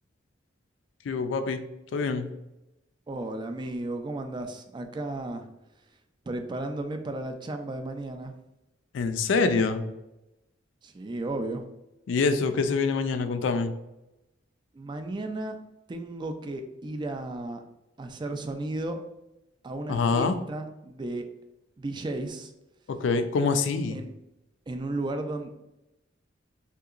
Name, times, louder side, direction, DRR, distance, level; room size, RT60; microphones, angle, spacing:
voice 1, 1.0-1.6 1.9-2.3 8.9-9.8 12.1-13.7 19.9-20.4 22.9-24.0, left 4 dB, 70° left, 9 dB, 0.3 m, -25 dB
voice 2, 3.1-5.5 6.3-8.3 10.8-11.6 14.7-15.6 15.9-17.6 18.0-19.0 19.6-21.3 21.8-22.5 23.9-24.1 24.7-25.5, right 2 dB, 25° right, 6 dB, 0.3 m, -34 dB
3.6 x 2.8 x 2.4 m, 0.93 s
head